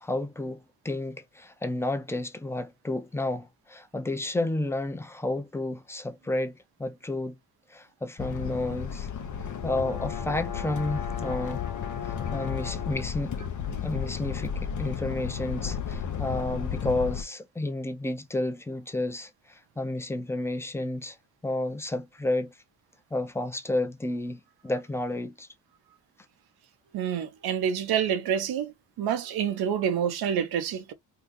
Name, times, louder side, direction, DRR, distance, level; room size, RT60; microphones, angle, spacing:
voice 1, 0.0-7.4 7.7-9.1 9.6-11.6 12.0-13.4 13.8-21.2 21.4-22.6 23.1-25.5, left 2 dB, 5° left, 0.6 m, -31 dB
sound 1, 8.2-17.2, left 8 dB, 55° left, 0.7 m, -33 dB
sound 2, 9.2-13.1, left 8 dB, 70° left, 1.2 m, -39 dB
voice 2, 26.9-30.9, right 8 dB, 90° right, 0.8 m, -28 dB
2.8 x 2.4 x 3.6 m
cardioid pair, 65°, 37 cm